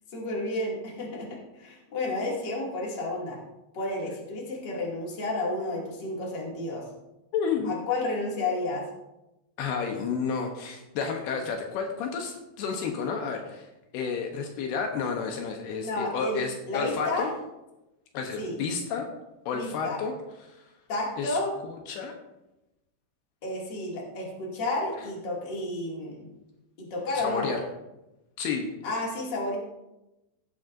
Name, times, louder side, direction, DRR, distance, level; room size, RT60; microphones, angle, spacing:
voice 1, 0.1-3.4 3.7-6.9 7.6-8.8 15.8-16.4 16.7-17.3 18.4-18.6 19.5-20.0 20.9-21.5 23.4-26.3 26.8-27.5 28.8-29.6, left 2 dB, 30° left, -3 dB, 2.5 m, -31 dB
voice 2, 7.3-7.7 9.6-13.7 13.9-17.3 18.1-19.1 19.5-20.1 20.5-20.6 21.2-21.4 21.9-22.1 27.2-27.6 28.4-28.7, left 5 dB, 75° left, 3 dB, 2.9 m, -31 dB
16.0 x 9.2 x 2.6 m, 0.96 s
omnidirectional pair, 4.8 m